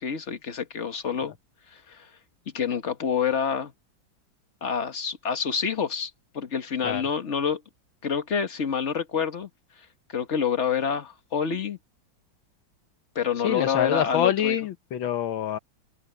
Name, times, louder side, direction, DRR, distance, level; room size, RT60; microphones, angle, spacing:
voice 1, 0.0-1.3 1.7-2.1 2.5-3.7 4.6-7.6 8.0-9.5 10.1-11.8 13.1-14.6, left 7 dB, 40° left, 1.6 m, -27 dB
voice 2, 13.4-15.6, left 10 dB, 85° left, 2.0 m, -26 dB
omnidirectional pair, 2.1 m